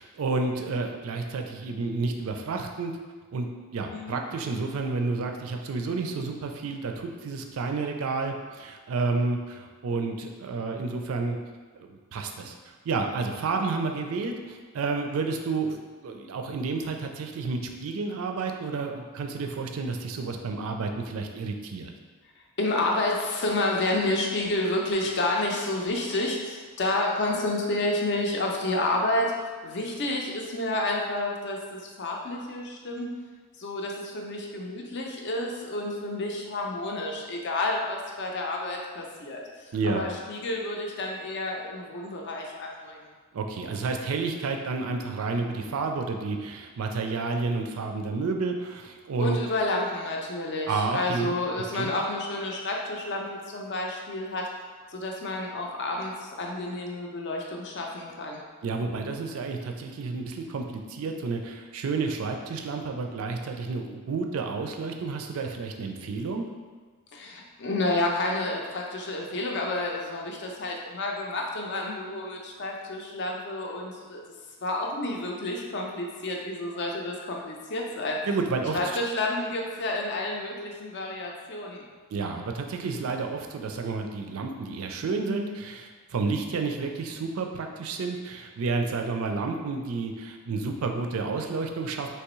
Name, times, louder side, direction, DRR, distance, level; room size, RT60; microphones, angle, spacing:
voice 1, 0.0-2.9 3.3-11.4 11.7-15.8 16.0-21.9 39.7-40.0 43.3-49.4 50.7-51.3 51.7-51.9 58.6-66.4 78.3-78.8 82.1-92.1, right 4 dB, 70° right, 4 dB, 0.4 m, -30 dB
voice 2, 22.6-29.4 29.6-33.1 33.6-43.1 49.2-54.4 54.9-58.4 67.1-74.2 74.6-78.2 78.7-81.8, left 2 dB, 55° left, 0 dB, 0.5 m, -30 dB
3.4 x 2.9 x 3.0 m, 1.4 s
head